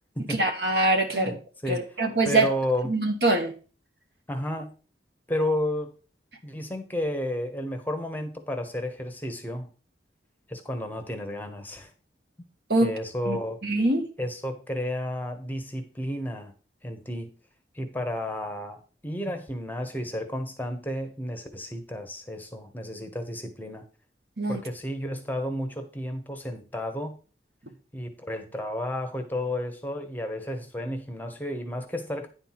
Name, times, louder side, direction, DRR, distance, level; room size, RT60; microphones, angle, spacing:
voice 1, 0.3-1.3 1.7-2.5 2.9-3.5 12.7-12.9 13.3-13.4 13.6-14.1 24.4-24.6, right 2 dB, 60° right, 1.5 m, -23 dB
voice 2, 1.1-2.0 2.3-2.9 4.3-4.7 5.3-5.9 6.4-9.7 10.5-11.9 12.8-13.6 14.2-16.5 16.8-17.3 17.7-23.8 24.5-27.1 27.9-32.3, left 1 dB, 10° left, 0.9 m, -32 dB
10.0 x 4.4 x 5.7 m
head